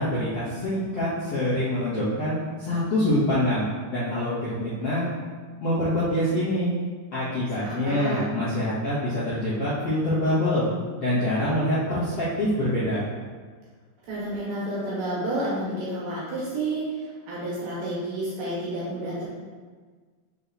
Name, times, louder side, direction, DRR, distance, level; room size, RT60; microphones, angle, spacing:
voice 1, 0.0-5.0 5.6-6.7 7.1-10.7 11.0-13.0, left 1 dB, 55° left, -13 dB, 1.8 m, -25 dB
voice 2, 7.6-8.2 14.0-19.2, right 1 dB, 60° right, -8 dB, 2.8 m, -30 dB
6.5 x 4.0 x 4.0 m, 1.5 s
omnidirectional pair, 4.9 m